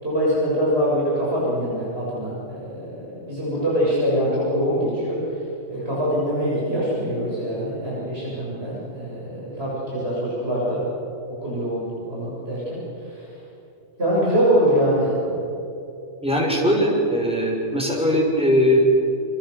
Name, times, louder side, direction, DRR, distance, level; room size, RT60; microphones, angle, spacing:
voice 1, 0.0-5.4 5.7-10.8 11.4-13.3 14.0-15.2, equal, 45° right, -7 dB, 7.6 m, -24 dB
voice 2, 16.2-18.8, equal, 5° right, -2 dB, 6.4 m, -20 dB
29.5 x 25.0 x 6.8 m, 2.9 s
omnidirectional pair, 1.4 m